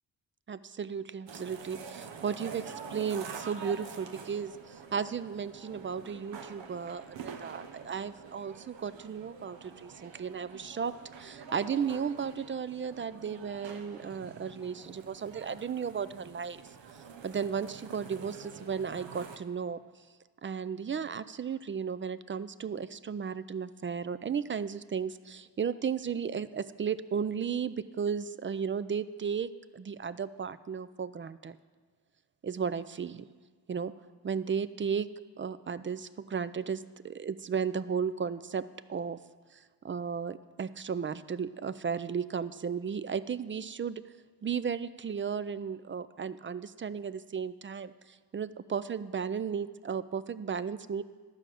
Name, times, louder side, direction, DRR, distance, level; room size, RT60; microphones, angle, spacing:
voice 1, 0.5-16.6 17.2-19.8 20.4-31.6 32.4-33.3 33.7-33.9 34.2-35.1 35.4-39.2 39.5-44.0 44.4-51.0, right 6 dB, 30° right, 15 dB, 0.4 m, -35 dB
sound 1, 1.3-19.4, right 6 dB, 75° right, 1.0 m, -47 dB
11.5 x 5.0 x 7.5 m, 1.5 s
cardioid pair, 60°, 45 cm